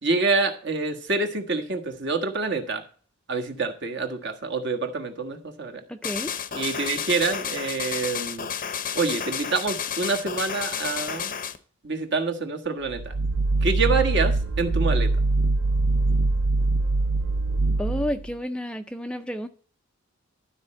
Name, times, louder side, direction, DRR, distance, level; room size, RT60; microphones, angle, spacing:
voice 1, 0.0-2.8 3.3-5.8 6.5-8.5 8.9-11.4 11.8-13.1 13.6-15.1, right 3 dB, 55° right, 1.4 m, -27 dB
voice 2, 5.9-6.3 17.8-19.5, equal, 5° left, 0.4 m, -30 dB
sound 1, 6.0-11.6, left 8 dB, 40° left, 0.7 m, -31 dB
sound 2, 12.9-18.3, right 2 dB, 70° right, 0.5 m, -23 dB
12.0 x 4.3 x 7.5 m
head